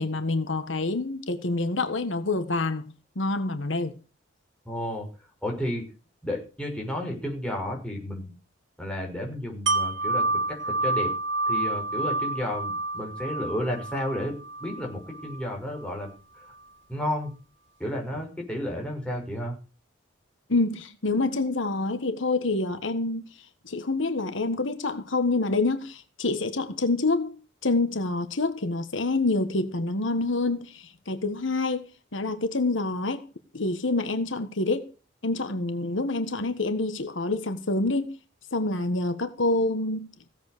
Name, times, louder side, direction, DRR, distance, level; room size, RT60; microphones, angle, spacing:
voice 1, 0.0-3.9 20.5-23.2 23.6-31.8 32.1-33.2 33.5-34.9 35.2-38.1 38.5-40.1, left 2 dB, 80° left, 1.5 m, -27 dB
voice 2, 4.6-5.1 5.4-5.8 6.2-8.3 8.8-11.1 11.5-14.3 14.6-16.1 16.9-17.3 17.8-19.5, left 1 dB, 5° left, 6.0 m, -32 dB
Wind chime, 9.7-15.5 15.9-16.0, right 2 dB, 70° right, 2.1 m, -29 dB
16.0 x 8.3 x 6.7 m
head